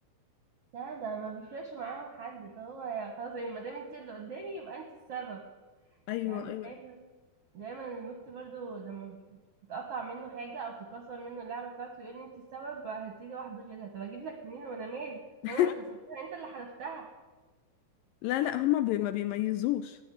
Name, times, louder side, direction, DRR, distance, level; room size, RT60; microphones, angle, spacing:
voice 1, 0.7-5.4 6.2-7.0 7.5-9.4 9.7-15.2 15.5-15.7 16.1-17.1, right 5 dB, 60° right, 1.7 m, -40 dB
voice 2, 6.1-6.7 15.4-15.7 18.2-20.0, left 14 dB, 80° left, 2.1 m, -29 dB
14.0 x 10.0 x 9.1 m
omnidirectional pair, 4.4 m